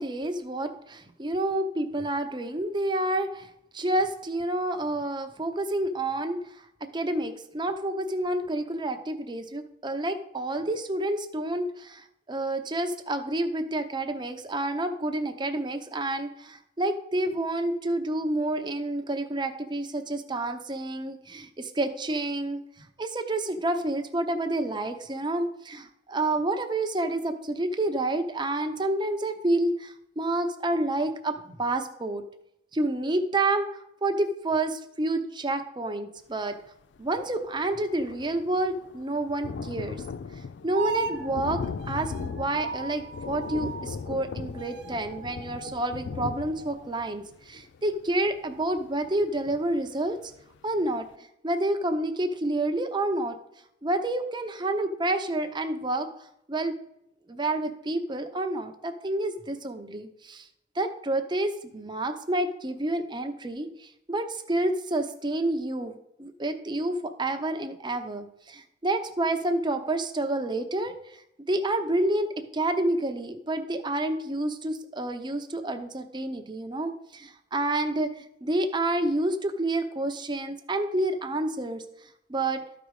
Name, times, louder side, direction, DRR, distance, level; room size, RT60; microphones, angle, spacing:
voice 1, 0.0-22.6 23.0-32.2 32.7-36.6 37.0-40.0 40.6-50.3 50.6-51.1 51.4-53.4 53.8-56.1 56.5-56.8 57.3-60.5 60.8-70.9 71.5-81.8 82.3-82.6, right 1 dB, 25° right, 6 dB, 0.8 m, -29 dB
Thunder, 37.0-37.1 37.3-49.9 50.4-50.5 50.8-50.9, left 5 dB, 70° left, 0.4 m, -38 dB
sound 1, 40.7-44.3 44.5-47.0, right 4 dB, 65° right, 1.0 m, -38 dB
13.0 x 5.1 x 4.8 m, 0.80 s
head